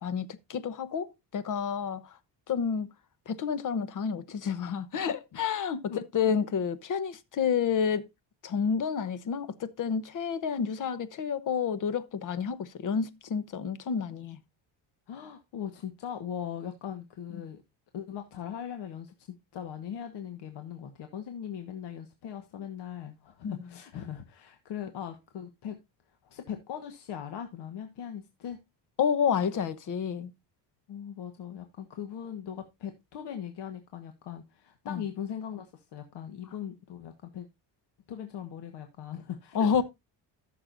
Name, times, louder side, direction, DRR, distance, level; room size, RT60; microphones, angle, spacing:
voice 1, 0.0-2.2 2.5-2.9 3.3-8.0 8.4-14.4 17.3-17.5 23.4-23.5 29.0-30.3 34.8-35.0 39.5-39.8, left 7 dB, 50° left, 1.0 m, -29 dB
voice 2, 15.1-17.6 17.9-19.3 19.5-25.8 26.2-28.6 30.9-37.5 38.1-39.8, left 9 dB, 75° left, 1.4 m, -40 dB
14.5 x 6.7 x 2.5 m
cardioid pair, 120°, 42 cm